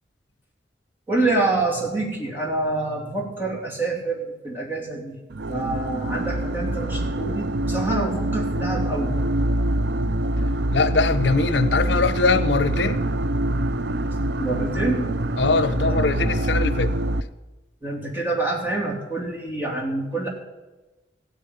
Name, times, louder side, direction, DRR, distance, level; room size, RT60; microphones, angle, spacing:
voice 1, 1.1-5.2 5.5-9.2 14.4-15.1 15.7-16.6 17.8-20.3, right 2 dB, 10° right, 2.9 m, -27 dB
sound 1, 5.3-17.2, right 1 dB, 65° right, 0.5 m, -25 dB
voice 2, 10.7-13.0 15.4-16.9, left 4 dB, 70° left, 0.8 m, -21 dB
16.0 x 7.0 x 9.2 m
head